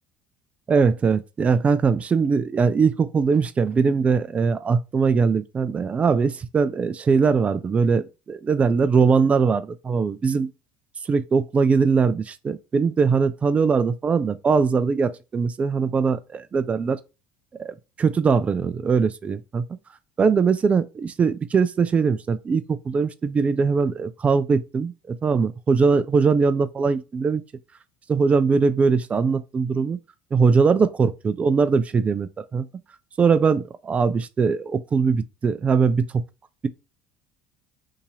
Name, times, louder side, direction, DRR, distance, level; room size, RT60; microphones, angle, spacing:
voice 1, 0.7-10.5 11.1-17.0 17.6-19.6 20.2-27.4 28.1-30.0 30.3-32.7 33.2-36.2, right 5 dB, 30° right, 0.4 m, -21 dB
2.9 x 2.7 x 3.9 m
hypercardioid pair, 75°, 5 cm